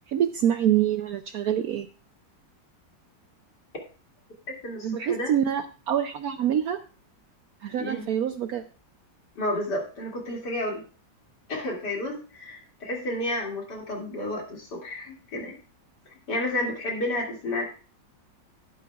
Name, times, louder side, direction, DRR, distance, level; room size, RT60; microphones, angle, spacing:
voice 1, 0.1-1.9 4.8-6.8 7.6-8.6, right 10 dB, 70° right, 8 dB, 0.9 m, -26 dB
voice 2, 4.5-5.3 7.7-8.0 9.4-10.8 11.5-15.6 16.1-17.6, left 1 dB, 60° left, -1 dB, 3.1 m, -31 dB
12.0 x 11.0 x 2.4 m, 0.36 s
omnidirectional pair, 2.0 m